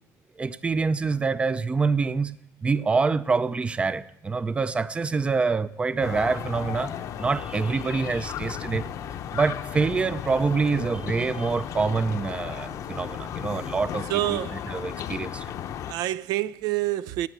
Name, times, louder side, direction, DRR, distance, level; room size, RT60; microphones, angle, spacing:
voice 1, 0.4-2.4 2.6-6.9 7.2-8.9 9.3-14.1 14.3-14.4 14.7-15.5, right 4 dB, 15° right, 0.4 m, -26 dB
sound 1, 6.0-15.9, left 9 dB, 60° left, 0.7 m, -35 dB
voice 2, 14.1-14.7 15.9-17.3, right 15 dB, 85° right, 0.4 m, -27 dB
17.5 x 7.1 x 8.1 m
cardioid pair, 140°, 6 cm